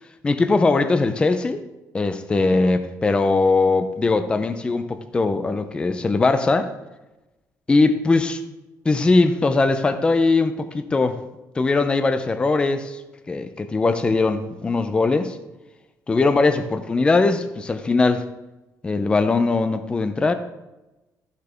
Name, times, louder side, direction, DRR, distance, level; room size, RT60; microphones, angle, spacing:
voice 1, 0.2-1.6 1.9-6.7 7.7-8.4 8.8-11.2 11.6-13.0 13.3-15.4 16.1-18.2 18.8-20.3, left 3 dB, 15° left, 9 dB, 0.5 m, -20 dB
13.5 x 6.6 x 3.4 m, 1.0 s
cardioid pair, 175°, 7 cm